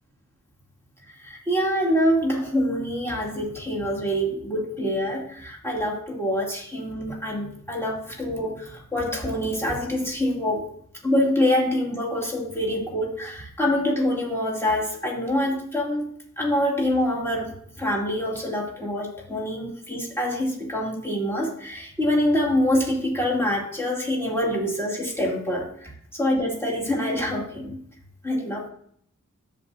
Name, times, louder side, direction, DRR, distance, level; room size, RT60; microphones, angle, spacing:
voice 1, 1.1-10.6 11.0-27.8 28.2-28.7, left 1 dB, 5° left, -3 dB, 2.5 m, -25 dB
14.0 x 5.0 x 2.7 m, 0.62 s
wide cardioid pair, 50°, 31 cm